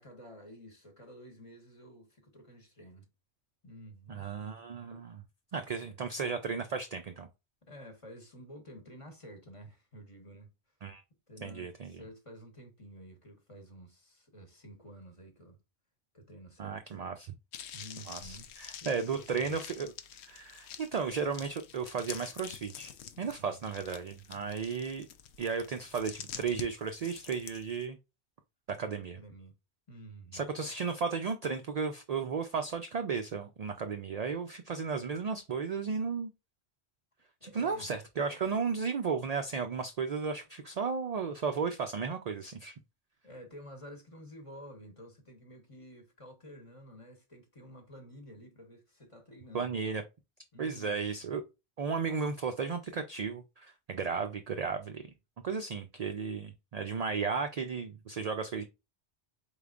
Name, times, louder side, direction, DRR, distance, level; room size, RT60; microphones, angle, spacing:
voice 1, 0.0-3.1 3.6-4.3 4.9-5.1 5.8-6.0 7.6-10.5 11.3-15.6 16.1-17.0 17.7-19.6 23.4-23.7 29.2-29.6 29.9-30.5 37.4-37.9 43.2-49.7 50.5-51.3, equal, 30° left, 1.0 m, -51 dB
voice 2, 4.1-5.2 5.5-7.3 10.8-11.0 11.4-12.0 16.6-17.3 18.1-19.9 20.2-25.1 25.4-28.0 28.7-29.2 30.3-36.3 37.4-42.7 49.5-50.0 50.6-51.4 51.8-55.1 55.4-58.6, right 5 dB, 55° right, 0.4 m, -34 dB
sound 1, 17.5-27.8, left 9 dB, 80° left, 0.9 m, -47 dB
4.7 x 3.4 x 2.4 m
omnidirectional pair, 1.1 m